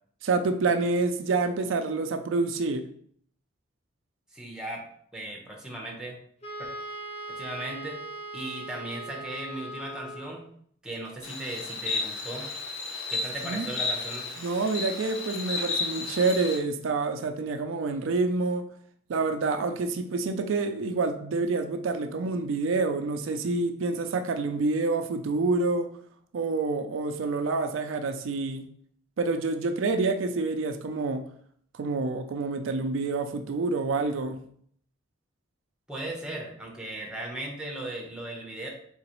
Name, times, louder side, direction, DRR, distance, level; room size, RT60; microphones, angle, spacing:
voice 1, 0.2-2.8 13.4-13.7 14.4-18.6 19.1-25.9 26.3-28.7 29.2-31.2 31.7-34.4, right 3 dB, 80° right, 7 dB, 0.4 m, -27 dB
voice 2, 4.3-4.8 5.1-6.2 6.6-6.7 7.3-8.0 8.3-10.4 10.8-12.5 13.1-14.3 35.9-38.7, right 1 dB, 5° right, -1 dB, 0.8 m, -37 dB
Wind instrument woodwind instrument, 6.4-10.4, right 2 dB, 35° left, 0.9 m, -39 dB
Insect, 11.2-16.6, left 3 dB, 75° left, 0.8 m, -33 dB
4.0 x 3.8 x 3.0 m, 0.63 s
head